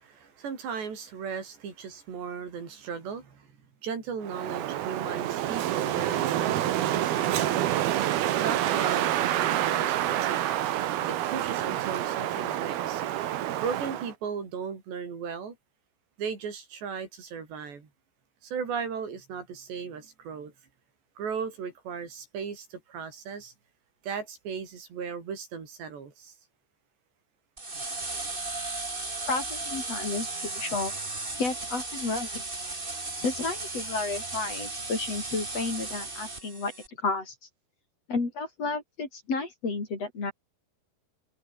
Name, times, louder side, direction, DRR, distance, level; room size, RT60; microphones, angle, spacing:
voice 1, 0.0-3.5 3.8-7.7 8.4-10.4 11.1-13.0 13.6-15.6 16.2-17.9 18.4-20.5 21.2-23.5 24.0-26.3, right 6 dB, 90° right, 7.1 m, -36 dB
Wind, 4.2-14.1, right 12 dB, 70° right, 3.3 m, -28 dB
sound 1, 27.6-36.9, right 3 dB, 15° right, 2.1 m, -35 dB
voice 2, 29.3-30.9 31.4-32.4 33.2-36.7 37.0-37.3 38.1-40.3, left 3 dB, 35° left, 5.6 m, -31 dB
omnidirectional pair, 4.8 m